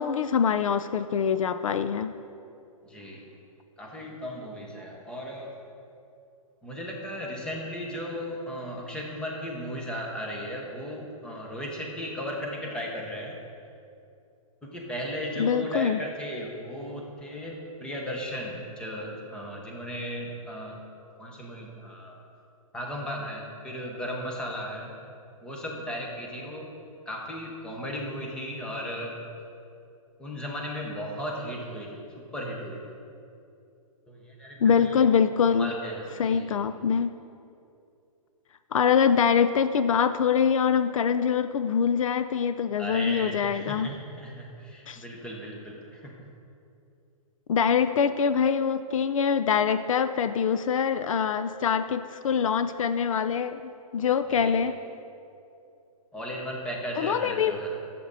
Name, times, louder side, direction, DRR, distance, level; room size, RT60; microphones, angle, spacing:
voice 1, 0.0-2.1 15.4-16.0 34.6-35.7 36.2-37.1 38.7-43.9 44.9-45.0 47.5-54.7 57.0-57.6, left 7 dB, 65° left, 11 dB, 0.5 m, -24 dB
voice 2, 2.8-3.3 3.8-5.5 6.6-13.4 14.6-20.8 21.2-22.2 22.7-24.9 25.4-26.7 27.1-29.2 30.2-33.0 34.1-35.1 35.5-36.6 42.8-46.1 54.3-54.7 56.1-57.8, equal, 5° left, -1 dB, 1.0 m, -36 dB
12.5 x 7.6 x 4.1 m, 2.6 s
hypercardioid pair, 165°, 19 cm